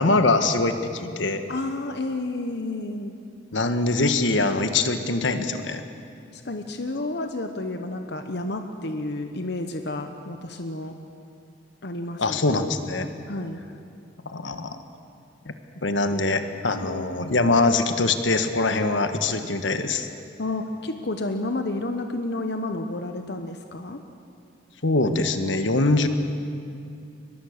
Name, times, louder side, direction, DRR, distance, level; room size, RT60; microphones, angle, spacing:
voice 1, 0.0-1.4 3.5-5.8 12.2-13.1 14.2-14.8 15.4-15.5 15.8-20.1 24.8-26.1, left 3 dB, 85° left, 8 dB, 1.4 m, -23 dB
voice 2, 1.5-3.1 4.9-5.4 6.3-11.0 11.8-12.4 13.3-13.6 16.1-16.2 16.8-17.4 20.4-24.0, left 2 dB, 65° left, 6 dB, 1.1 m, -31 dB
22.5 x 21.5 x 6.6 m, 2.5 s
head